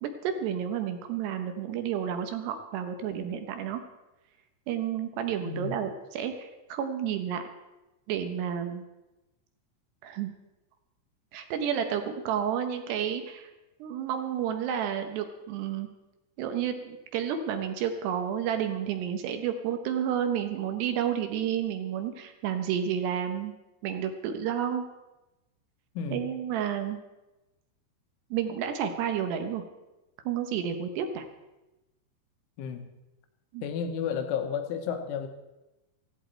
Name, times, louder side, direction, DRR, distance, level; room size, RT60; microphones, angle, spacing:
voice 1, 0.0-3.8 4.7-7.4 8.1-8.8 10.0-10.3 11.3-13.5 13.8-15.9 16.4-23.5 23.8-24.8 26.1-27.0 28.3-29.6 30.3-31.3 33.5-33.6, right 9 dB, 75° right, 7 dB, 2.6 m, -31 dB
voice 2, 5.5-5.8 26.0-26.3 32.6-32.9 33.6-35.3, left 7 dB, 75° left, 6 dB, 3.5 m, -32 dB
16.5 x 15.5 x 4.4 m, 1.0 s
omnidirectional pair, 5.9 m